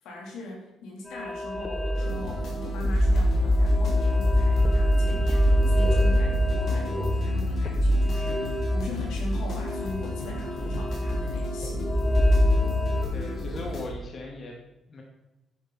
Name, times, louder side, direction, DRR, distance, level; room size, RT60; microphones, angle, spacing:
voice 1, 0.0-11.9, left 2 dB, 90° left, -2 dB, 3.9 m, -40 dB
sound 1, 1.1-13.0, left 1 dB, 20° left, 1.2 m, -24 dB
sound 2, 1.9-13.9, left 1 dB, 65° left, 4.5 m, -35 dB
voice 2, 13.1-14.6 14.9-15.0, left 2 dB, 45° left, 0 dB, 2.3 m, -38 dB
10.5 x 10.0 x 4.4 m, 0.96 s
cardioid pair, 90°, 0 cm